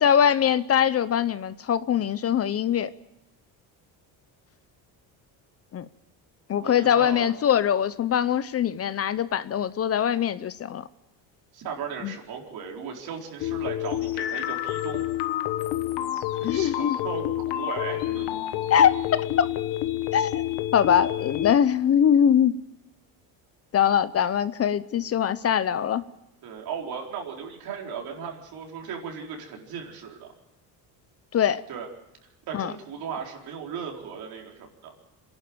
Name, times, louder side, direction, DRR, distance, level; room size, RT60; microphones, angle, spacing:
voice 1, 0.0-2.9 5.7-5.9 6.5-10.8 12.0-12.1 16.4-17.0 18.7-19.5 20.1-20.4 20.7-22.6 23.7-26.0 31.3-31.6 32.5-32.7, left 9 dB, 35° left, 0.6 m, -22 dB
voice 2, 6.6-7.3 11.5-15.1 16.4-18.3 26.4-30.3 31.7-31.9 32.5-34.9, right 6 dB, 65° right, 4.5 m, -37 dB
sound 1, 13.4-21.5, left 13 dB, 80° left, 1.4 m, -29 dB
26.5 x 11.5 x 8.9 m
cardioid pair, 125°, 40 cm